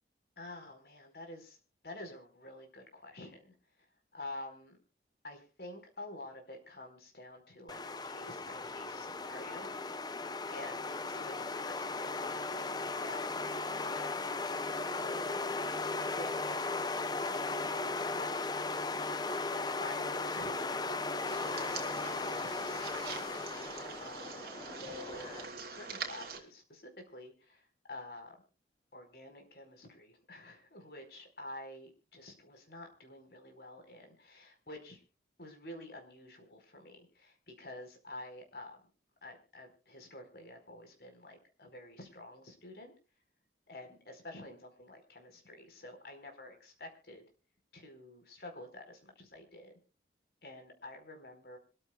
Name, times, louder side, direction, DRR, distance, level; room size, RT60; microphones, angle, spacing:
voice 1, 0.4-1.6 1.8-3.5 4.1-4.8 5.2-9.7 10.5-14.3 15.0-15.6 16.0-18.5 18.8-21.0 21.4-23.1 24.0-28.4 28.9-35.0 35.4-38.8 39.2-42.9 43.7-47.2 47.7-49.7 50.4-51.6, left 1 dB, 55° left, 5 dB, 4.6 m, -49 dB
sound 1, 7.7-25.5, left 3 dB, 25° left, 0.6 m, -37 dB
sound 2, 21.2-26.4, right 5 dB, 55° right, 3.1 m, -44 dB
25.5 x 14.0 x 2.3 m, 0.35 s
head